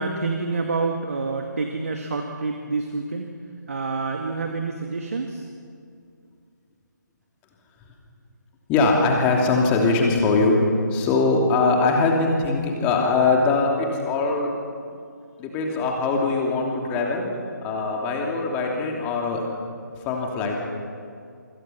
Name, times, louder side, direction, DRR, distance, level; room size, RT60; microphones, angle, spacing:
voice 1, 0.0-3.3 3.7-5.4, right 3 dB, 50° right, 3 dB, 2.2 m, -27 dB
voice 2, 8.7-10.6 10.9-14.5 15.4-17.3 17.6-19.4 20.0-20.6, left 3 dB, 15° left, 0 dB, 2.9 m, -21 dB
28.0 x 25.5 x 5.8 m, 2.3 s
figure-of-eight pair, 150°, 10 cm